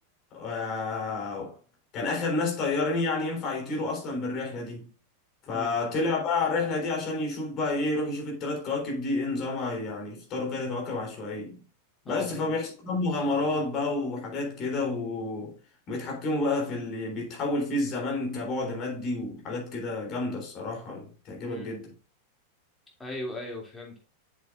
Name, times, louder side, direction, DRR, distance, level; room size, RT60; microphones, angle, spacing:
voice 1, 0.3-1.6 1.9-4.9 5.5-11.6 12.1-15.5 15.9-21.9, left 3 dB, 35° left, 3.6 m, -30 dB
voice 2, 5.5-5.8 12.1-12.5 21.5-21.7 23.0-24.0, left 2 dB, 10° left, 2.9 m, -38 dB
7.5 x 7.1 x 2.5 m
figure-of-eight pair, 90°, 0 cm